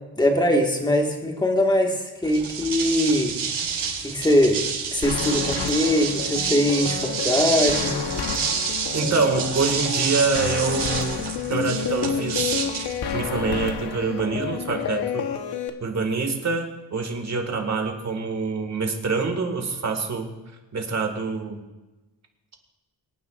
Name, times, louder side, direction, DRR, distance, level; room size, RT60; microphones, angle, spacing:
voice 1, 0.2-3.3 3.7-4.6 4.9-8.0, left 1 dB, 10° left, 1 dB, 1.6 m, -22 dB
sound 1, 2.2-13.7, right 6 dB, 75° right, 3.7 m, -28 dB
sound 2, 5.0-15.7, left 7 dB, 70° left, 1.1 m, -30 dB
voice 2, 8.9-11.2 11.5-12.6 13.1-15.3 15.8-20.3 20.7-21.6, right 4 dB, 40° right, 4 dB, 1.8 m, -25 dB
24.0 x 9.4 x 2.4 m, 1.1 s
wide cardioid pair, 130°, 40 cm